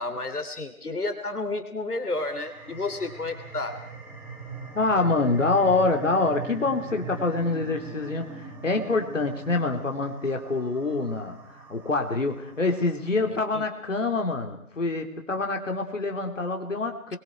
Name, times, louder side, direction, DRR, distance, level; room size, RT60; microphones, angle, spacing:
voice 1, 0.0-3.8 13.2-13.6, left 2 dB, 85° left, 9 dB, 3.3 m, -31 dB
sound 1, 2.0-13.1, right 4 dB, 25° right, 5.6 m, -41 dB
voice 2, 4.7-17.2, left 3 dB, 55° left, 4 dB, 3.5 m, -26 dB
29.5 x 22.5 x 4.7 m, 0.66 s
figure-of-eight pair, 165°, 44 cm